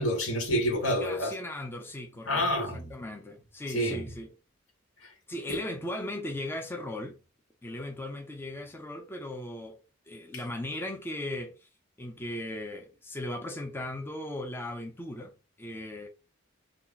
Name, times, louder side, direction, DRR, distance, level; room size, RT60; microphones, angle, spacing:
voice 1, 0.0-1.3 2.3-2.9 3.7-4.0 5.0-5.1 5.5-5.6, equal, 75° left, 1.3 m, -28 dB
voice 2, 1.0-2.6 2.9-4.3 5.3-7.2 7.6-9.8 10.1-11.7 12.0-15.3 15.6-16.1, left 1 dB, 10° left, 0.4 m, -37 dB
2.8 x 2.3 x 3.8 m
head